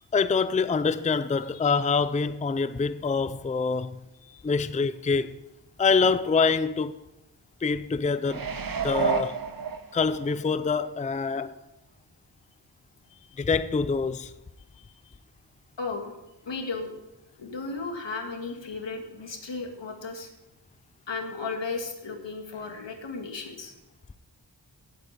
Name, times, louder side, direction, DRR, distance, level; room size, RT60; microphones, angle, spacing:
voice 1, 0.1-4.0 4.4-5.4 5.8-6.9 7.6-8.5 8.8-9.4 9.9-11.6 13.4-14.3, left 5 dB, 20° left, 0.4 m, -25 dB
sound 1, 8.2-10.3 10.8-10.9, right 6 dB, 55° right, 1.0 m, -30 dB
voice 2, 15.8-16.1 16.5-16.9 17.4-20.3 21.1-23.7, left 4 dB, 85° left, 2.0 m, -35 dB
17.0 x 7.7 x 4.2 m
wide cardioid pair, 85°, 43 cm